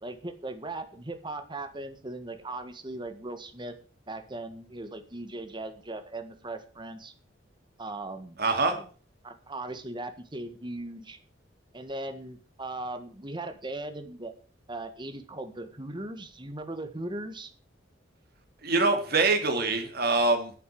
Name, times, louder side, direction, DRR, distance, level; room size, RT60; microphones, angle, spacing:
voice 1, 0.0-3.7 4.1-7.1 7.8-8.4 8.7-8.8 9.2-11.2 11.7-14.3 14.7-17.5, right 2 dB, 25° right, 8 dB, 1.6 m, -38 dB
voice 2, 8.4-8.7 18.6-20.5, right 3 dB, 55° right, 5 dB, 2.9 m, -24 dB
11.0 x 8.4 x 7.7 m, 0.41 s
head